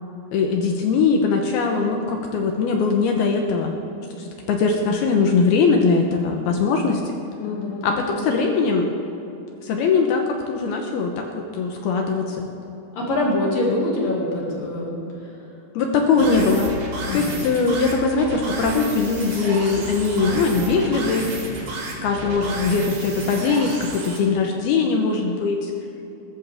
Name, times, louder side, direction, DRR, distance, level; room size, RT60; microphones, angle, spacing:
voice 1, 0.3-3.7 4.2-7.2 7.8-8.9 9.6-12.5 15.7-16.7 17.1-21.3 22.0-25.7, left 4 dB, 70° left, 2 dB, 2.6 m, -21 dB
voice 2, 7.4-8.3 12.9-15.0 17.0-17.4, left 1 dB, 55° left, -3 dB, 3.7 m, -25 dB
sound 1, 16.2-24.2, right 2 dB, 45° right, 3.3 m, -31 dB
21.0 x 14.0 x 3.6 m, 2.9 s
omnidirectional pair, 5.2 m